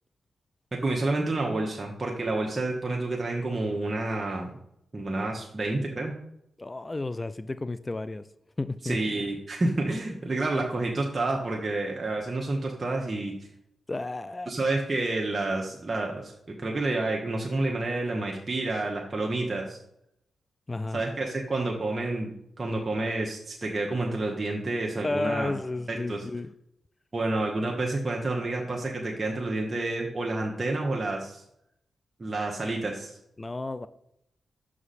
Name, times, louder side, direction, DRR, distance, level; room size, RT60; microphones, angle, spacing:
voice 1, 0.7-4.5 4.9-6.1 8.8-13.3 14.5-16.3 16.6-19.8 20.9-25.5 25.9-26.2 27.1-31.4 32.2-33.2, right 2 dB, 35° right, -1 dB, 1.1 m, -29 dB
voice 2, 6.6-8.3 8.6-9.0 13.9-14.5 20.7-21.0 25.0-26.5 33.4-33.9, left 2 dB, 30° left, 14 dB, 0.3 m, -32 dB
6.1 x 4.9 x 4.2 m, 0.76 s
cardioid pair, 50°, 0 cm